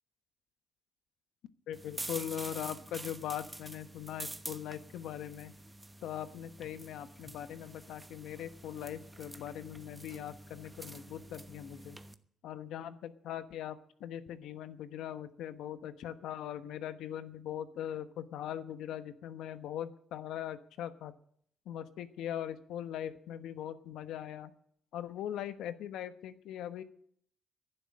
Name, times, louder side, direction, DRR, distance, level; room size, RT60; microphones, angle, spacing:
voice 1, 1.7-5.5 6.0-12.0 12.4-21.1 21.7-24.5 24.9-26.8, left 10 dB, 85° left, 12 dB, 1.1 m, -41 dB
sound 1, 1.7-12.1, right 1 dB, 15° right, 1.0 m, -47 dB
11.5 x 10.0 x 8.6 m, 0.64 s
cardioid pair, 90°, 0 cm